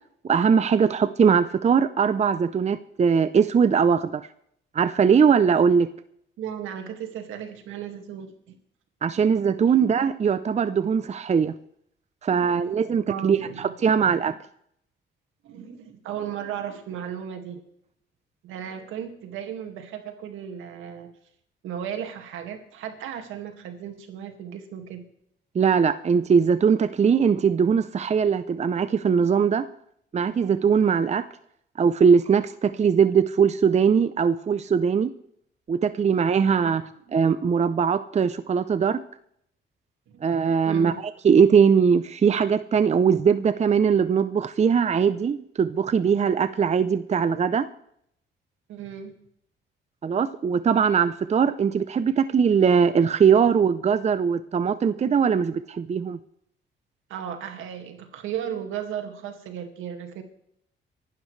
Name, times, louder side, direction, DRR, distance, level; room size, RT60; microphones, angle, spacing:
voice 1, 0.2-4.2 4.7-5.9 9.0-11.5 12.2-14.3 25.5-29.7 30.1-31.3 31.8-35.1 35.7-36.8 37.1-39.0 40.2-40.9 41.2-47.7 50.0-56.2, right 6 dB, 35° right, 13 dB, 0.7 m, -21 dB
voice 2, 6.4-8.6 9.2-9.3 9.7-9.8 12.3-14.4 15.4-17.6 18.4-21.1 21.6-25.0 36.6-37.2 40.1-40.2 40.7-41.0 48.7-49.2 57.1-60.2, right 9 dB, 85° right, 5 dB, 2.2 m, -36 dB
24.0 x 12.0 x 3.3 m, 0.71 s
cardioid pair, 90°, 20 cm